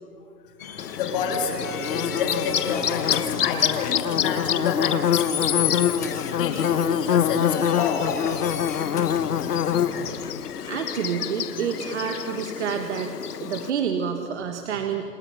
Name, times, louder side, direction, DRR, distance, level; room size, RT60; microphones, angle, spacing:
sound 1, 0.6-10.1, left 7 dB, 10° left, 0.7 m, -35 dB
Bird / Buzz, 0.8-13.7, left 9 dB, 65° left, 1.2 m, -25 dB
voice 1, 0.9-5.8 6.3-8.4 9.9-10.2, left 5 dB, 30° left, 3 dB, 3.3 m, -30 dB
voice 2, 10.6-13.1 13.4-15.0, right 7 dB, 45° right, 5 dB, 1.7 m, -28 dB
28.5 x 28.0 x 5.8 m, 2.4 s
hypercardioid pair, 165°, 49 cm